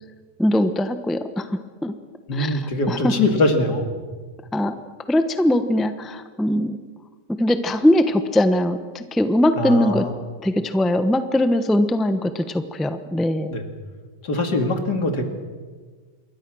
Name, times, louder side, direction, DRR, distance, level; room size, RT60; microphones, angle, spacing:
voice 1, 0.4-1.9 2.3-2.6 2.9-3.1 4.5-4.7 5.1-6.8 7.4-10.0 10.4-13.5, left 1 dB, ahead, 9 dB, 0.8 m, -21 dB
voice 2, 2.3-3.9 9.6-10.2 13.5-13.7 14.2-15.2, left 2 dB, 70° left, 5 dB, 2.9 m, -22 dB
27.0 x 22.0 x 6.3 m, 1.5 s
omnidirectional pair, 1.8 m